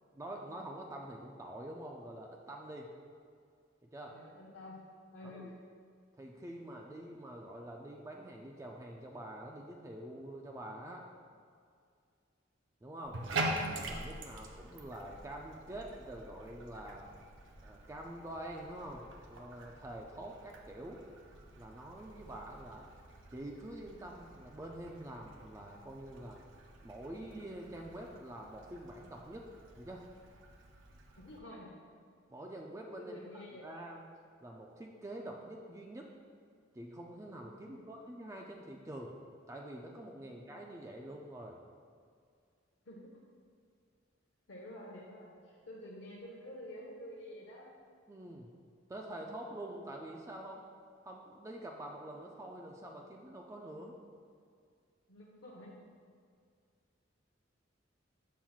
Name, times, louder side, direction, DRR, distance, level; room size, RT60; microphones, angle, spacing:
voice 1, 0.1-2.9 3.8-4.2 5.2-5.5 6.2-11.1 12.8-13.2 13.8-17.1 17.6-21.0 21.6-22.9 23.3-26.4 26.8-29.5 29.8-30.0 32.3-33.1 33.6-34.0 34.4-36.1 36.7-39.2 39.5-41.6 48.1-48.5 48.9-50.7 51.0-53.9, right 1 dB, 15° right, 0 dB, 0.3 m, -46 dB
voice 2, 4.1-5.6 31.2-31.8 33.0-33.7 37.7-37.9 40.3-40.4 42.8-43.1 44.5-47.7 55.1-55.7, left 1 dB, 70° left, -4 dB, 0.8 m, -49 dB
Bathtub (filling or washing), 13.0-31.4, right 2 dB, 75° right, 0.6 m, -45 dB
7.2 x 5.8 x 2.3 m, 2.2 s
head